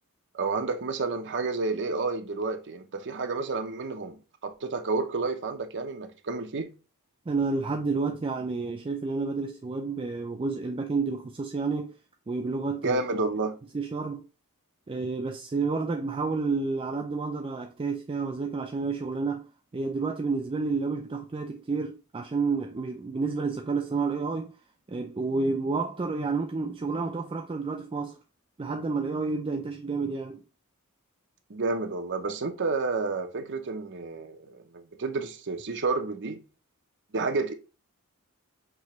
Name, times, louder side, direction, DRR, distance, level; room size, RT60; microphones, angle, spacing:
voice 1, 0.3-6.7 12.8-13.5 31.5-36.4 37.1-37.5, right 3 dB, 55° right, 0.7 m, -30 dB
voice 2, 7.3-11.9 12.3-13.0 13.7-14.3 14.9-19.5 19.7-24.5 24.9-28.2 28.6-30.4, right 4 dB, 25° right, 0.4 m, -30 dB
6.1 x 2.9 x 3.0 m
head